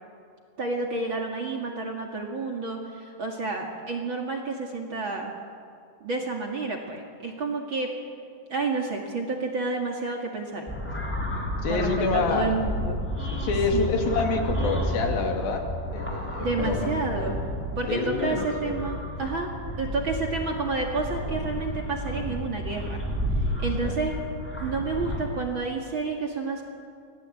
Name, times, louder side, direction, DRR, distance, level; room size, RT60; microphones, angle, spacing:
voice 1, 0.6-5.3 6.0-7.9 8.5-10.7 11.7-13.0 16.4-17.4 17.8-19.5 19.8-23.0 23.6-24.2 24.6-26.6, right 3 dB, 40° right, 1 dB, 2.3 m, -30 dB
sound 1, 10.7-25.2, equal, 5° left, 3.9 m, -31 dB
voice 2, 11.6-12.5 13.2-16.9 17.9-18.8 23.8-24.0, left 4 dB, 75° left, 3 dB, 4.3 m, -27 dB
26.0 x 19.5 x 8.5 m, 2.4 s
omnidirectional pair, 4.2 m